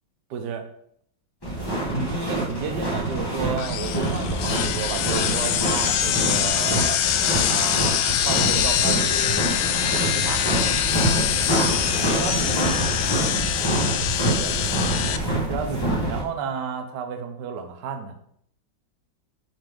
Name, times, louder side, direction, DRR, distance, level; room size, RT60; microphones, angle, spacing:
voice 1, 0.3-0.6 1.9-7.0 7.4-9.5 10.1-10.5 12.1-12.7 14.4-14.6 15.5-18.2, right 5 dB, 65° right, 6 dB, 1.3 m, -31 dB
sound 1, 1.4-16.2, right 1 dB, 15° left, 1.5 m, -26 dB
sound 2, 3.6-15.2, left 11 dB, 75° left, 1.1 m, -24 dB
7.3 x 5.5 x 3.7 m, 0.67 s
omnidirectional pair, 2.1 m